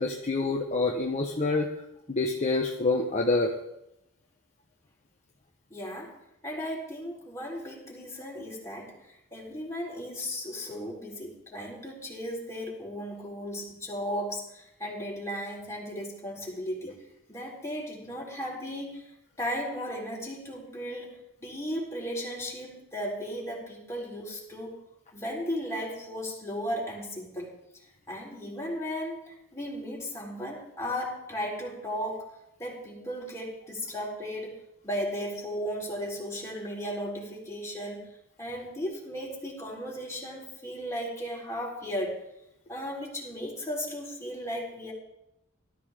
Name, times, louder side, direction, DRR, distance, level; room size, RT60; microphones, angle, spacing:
voice 1, 0.0-1.7 2.1-3.5, left 3 dB, 35° left, 0 dB, 1.3 m, -26 dB
voice 2, 5.7-6.2 6.4-16.9 17.3-19.1 19.4-24.8 25.1-27.5 28.1-32.3 32.6-34.6 34.8-38.1 38.4-42.2 42.7-44.9, equal, 15° left, -3 dB, 4.3 m, -35 dB
18.5 x 13.5 x 3.8 m, 0.83 s
head